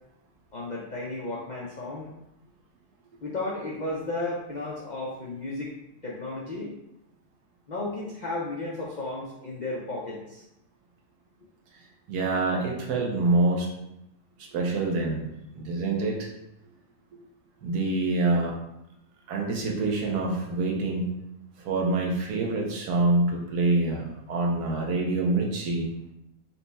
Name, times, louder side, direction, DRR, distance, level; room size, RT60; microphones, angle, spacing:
voice 1, 0.5-2.1 3.2-5.7 6.0-6.8 7.7-10.4, left 2 dB, 85° left, -4 dB, 0.4 m, -34 dB
voice 2, 12.1-13.7 14.5-15.3 15.6-16.3 17.6-18.5 19.3-21.1 21.6-25.9, right 2 dB, 85° right, 0 dB, 1.4 m, -26 dB
4.2 x 2.3 x 4.0 m, 0.85 s
omnidirectional pair, 1.7 m